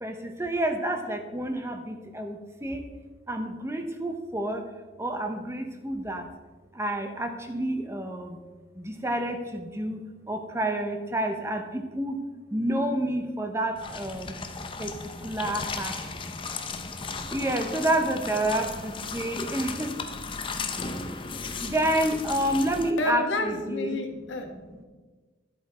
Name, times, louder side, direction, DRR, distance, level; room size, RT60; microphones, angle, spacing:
voice 1, 0.0-2.9 3.3-4.6 5.0-6.3 6.7-8.4 8.8-10.0 10.3-12.2 12.5-14.4 14.8-16.2 17.3-20.0 21.6-24.0 24.5-24.8, right 1 dB, 15° right, 5 dB, 0.8 m, -29 dB
sound 1, 13.8-22.9, left 4 dB, 25° left, 0.7 m, -35 dB
voice 2, 23.0-24.5, left 1 dB, 75° left, 4 dB, 1.4 m, -30 dB
13.0 x 7.9 x 4.3 m, 1.3 s
head